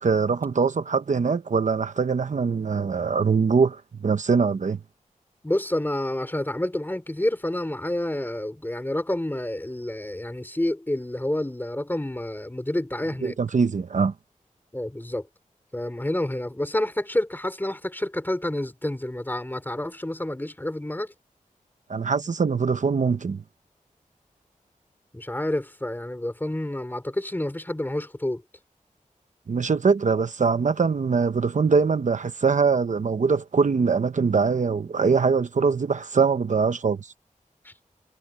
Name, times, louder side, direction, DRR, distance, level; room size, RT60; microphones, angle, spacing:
voice 1, 0.0-4.8 13.2-14.1 21.9-23.4 29.5-37.1, right 5 dB, 65° right, 1.0 m, -22 dB
voice 2, 5.4-13.4 14.7-15.3 15.7-21.1 25.1-28.4 37.6-37.7, left 1 dB, 15° left, 4.0 m, -29 dB
wide cardioid pair, 110°, 14 cm